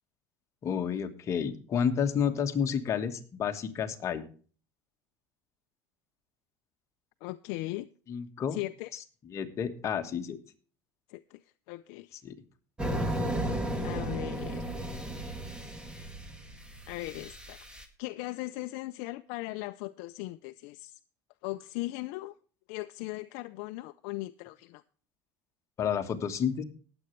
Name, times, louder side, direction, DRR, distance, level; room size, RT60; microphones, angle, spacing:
voice 1, 0.6-4.2 8.1-8.6 9.3-10.4 12.2-12.4 25.8-26.6, left 7 dB, 35° left, 1.4 m, -30 dB
voice 2, 7.2-7.9 8.5-8.9 11.1-11.4 11.7-12.2 13.8-14.6 16.9-17.6 18.0-21.0 21.4-22.3 22.7-24.8, left 19 dB, 70° left, 0.5 m, -38 dB
sound 1, 12.8-17.8, right 1 dB, 10° right, 1.7 m, -34 dB
19.0 x 7.9 x 3.2 m
cardioid pair, 135°, 9 cm